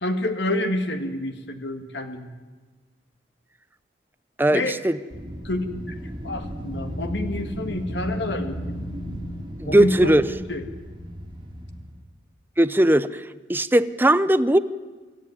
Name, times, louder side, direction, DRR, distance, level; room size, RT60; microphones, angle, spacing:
voice 1, 0.0-2.3 4.5-4.8 5.4-6.0 6.2-8.8 9.6-10.2 10.5-10.6, left 1 dB, 80° left, 7 dB, 1.8 m, -28 dB
voice 2, 4.4-5.0 9.6-10.3 12.6-13.2 13.5-14.6, right 1 dB, 10° right, 13 dB, 0.7 m, -18 dB
Wind, 5.1-12.0, equal, 30° right, 2.9 m, -34 dB
25.5 x 14.0 x 9.8 m, 1.3 s
head